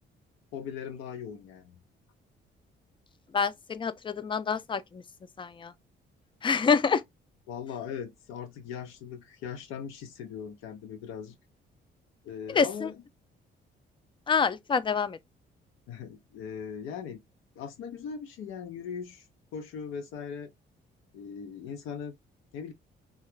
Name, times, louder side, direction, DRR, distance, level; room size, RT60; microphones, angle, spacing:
voice 1, 0.5-1.8 7.5-11.4 12.2-13.0 15.9-17.2 17.6-19.3 19.5-20.5 21.1-22.1 22.5-22.7, left 7 dB, 90° left, 0.5 m, -39 dB
voice 2, 3.3-5.0 5.4-5.7 6.4-7.0 12.5-12.9 14.3-15.2, left 5 dB, 25° left, 0.3 m, -27 dB
2.8 x 2.3 x 3.1 m
cardioid pair, 90°, 20 cm